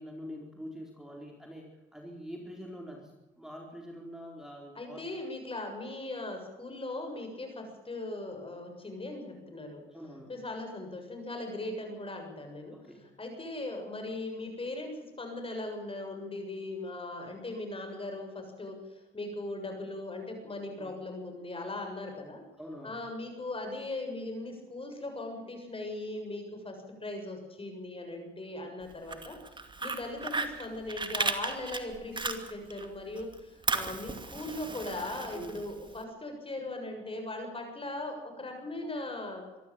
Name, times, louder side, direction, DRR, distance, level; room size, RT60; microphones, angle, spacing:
voice 1, 0.0-5.0 9.9-10.3 12.7-13.1 20.8-20.9 22.6-23.0 28.1-28.3 35.3-35.6, equal, 5° right, 0 dB, 4.4 m, -45 dB
voice 2, 4.8-9.8 10.3-12.8 13.2-22.4 22.8-29.4 29.8-39.4, left 2 dB, 25° left, 4 dB, 7.0 m, -39 dB
Fire, 28.9-32.9 33.2-36.0, right 3 dB, 25° right, 2.5 m, -35 dB
24.5 x 13.0 x 8.9 m, 1.2 s
cardioid pair, 90°, 20 cm